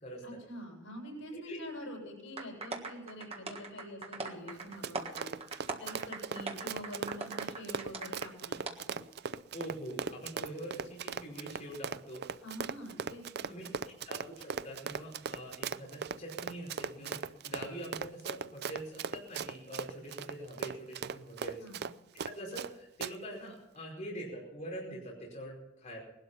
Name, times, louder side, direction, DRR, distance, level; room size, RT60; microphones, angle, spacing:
voice 1, 0.2-5.3 5.7-8.6 8.9-9.1 12.4-13.7 21.6-21.9, equal, 80° left, 0 dB, 7.2 m, -46 dB
sound 1, 2.4-8.3 8.7-8.8, right 3 dB, 30° right, 1.6 m, -41 dB
Run, 4.6-22.7 23.0-23.1, right 6 dB, 55° right, 0.5 m, -38 dB
voice 2, 9.5-12.2 13.5-13.6 14.1-21.6 22.3-26.0, right 1 dB, 40° left, -4 dB, 5.1 m, -44 dB
19.5 x 12.0 x 5.6 m, 0.96 s
head